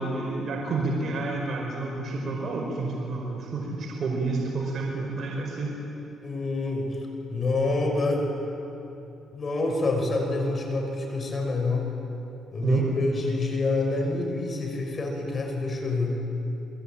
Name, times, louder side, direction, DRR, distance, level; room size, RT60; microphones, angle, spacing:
voice 1, 0.0-5.7 12.6-12.9, right 3 dB, 55° right, -2 dB, 5.1 m, -29 dB
voice 2, 6.2-7.0 7.3-8.3 9.3-11.8 12.5-16.2, left 2 dB, 40° left, 2 dB, 6.1 m, -27 dB
29.0 x 21.5 x 9.0 m, 3.0 s
cardioid pair, 90°, 0 cm